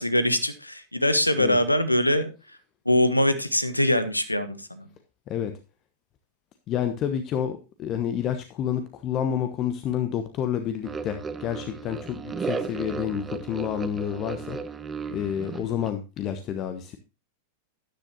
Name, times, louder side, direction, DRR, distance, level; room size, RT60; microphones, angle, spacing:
voice 1, 0.0-2.3 2.8-4.9, left 1 dB, 85° left, 14 dB, 1.1 m, -23 dB
voice 2, 6.7-14.6 15.1-17.0, left 9 dB, 35° left, 8 dB, 1.0 m, -29 dB
sound 1, 10.8-15.9, right 5 dB, 15° right, 0.9 m, -35 dB
13.0 x 10.0 x 2.9 m, 0.29 s
figure-of-eight pair, 90°, 0 cm